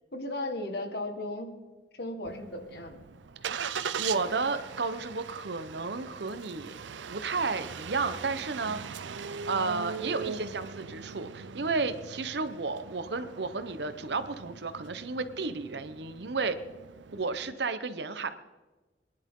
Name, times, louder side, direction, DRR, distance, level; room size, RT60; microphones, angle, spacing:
voice 1, 0.1-1.5 2.0-3.0, left 1 dB, 60° left, 5 dB, 1.6 m, -35 dB
Engine starting, 2.2-17.5, right 6 dB, 85° right, 0.6 m, -41 dB
voice 2, 3.4-6.8 7.1-16.6 17.1-18.3, right 4 dB, 65° right, 11 dB, 0.9 m, -33 dB
23.5 x 11.0 x 3.8 m, 1.2 s
head